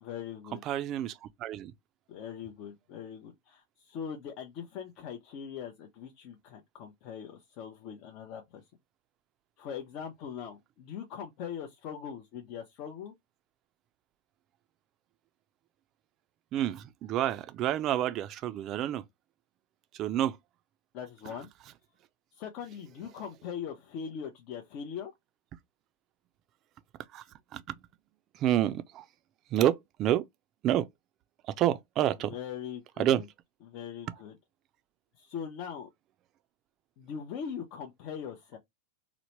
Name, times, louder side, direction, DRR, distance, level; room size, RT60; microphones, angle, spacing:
voice 1, 0.0-0.6 2.1-8.6 9.6-13.1 20.9-21.5 22.3-25.1 32.2-33.2 33.6-34.4 35.2-35.9 37.0-38.6, left 7 dB, 50° left, 0.6 m, -41 dB
voice 2, 0.7-1.7 16.5-19.0 20.0-20.4 27.1-27.2 27.5-27.6 28.4-29.0 29.5-30.2 30.6-30.9 31.6-32.3 33.0-33.2, right 12 dB, 40° right, 0.4 m, -28 dB
3.0 x 2.1 x 3.0 m
hypercardioid pair, 120°, 0 cm